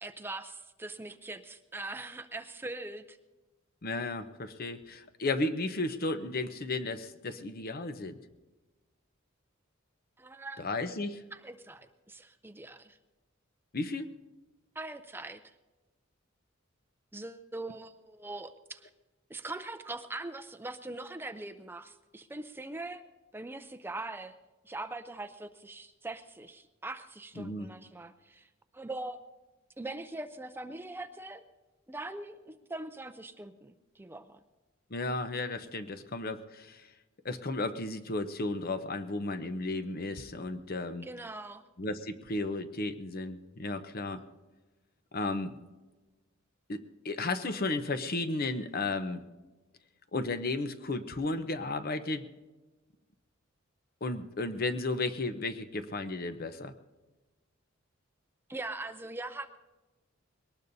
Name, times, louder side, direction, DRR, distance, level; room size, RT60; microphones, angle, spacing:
voice 1, 0.0-3.2 10.2-10.7 11.3-13.0 14.8-15.4 17.1-18.9 19.3-23.0 23.3-24.3 24.6-28.5 28.7-29.2 29.8-31.4 31.9-34.4 41.0-41.6 58.5-59.6, right 2 dB, 10° right, 10 dB, 0.5 m, -42 dB
voice 2, 3.8-8.1 10.6-11.2 13.7-14.1 27.4-27.7 34.9-36.9 37.2-41.1 41.8-44.2 45.1-45.6 46.7-49.2 50.1-52.3 54.0-56.7, left 2 dB, 50° left, 10 dB, 0.8 m, -34 dB
22.0 x 19.0 x 2.7 m, 1.2 s
head